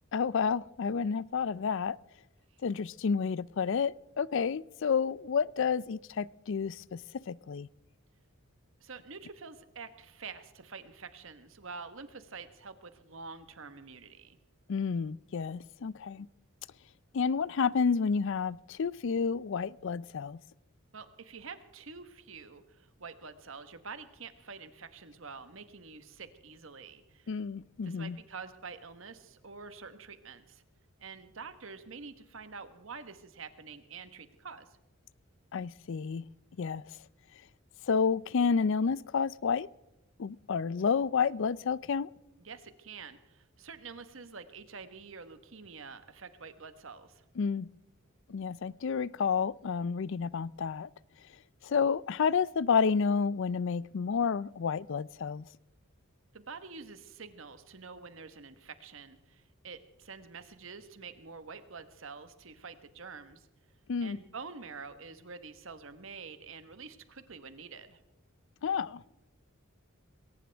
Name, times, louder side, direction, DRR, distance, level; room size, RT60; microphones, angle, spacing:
voice 1, 0.1-2.0 2.6-7.0 7.3-7.7 14.7-16.3 17.1-20.4 27.3-28.2 35.5-36.2 36.6-36.8 37.9-39.7 40.2-42.1 47.4-47.7 48.3-50.9 51.6-55.4 63.9-64.2 68.6-69.0, left 6 dB, 60° left, 0.4 m, -30 dB
voice 2, 8.8-14.4 20.9-27.4 27.8-30.6 31.0-34.7 42.4-47.2 56.3-63.5 64.0-68.0, right 5 dB, 65° right, 1.3 m, -47 dB
21.0 x 18.0 x 3.5 m
head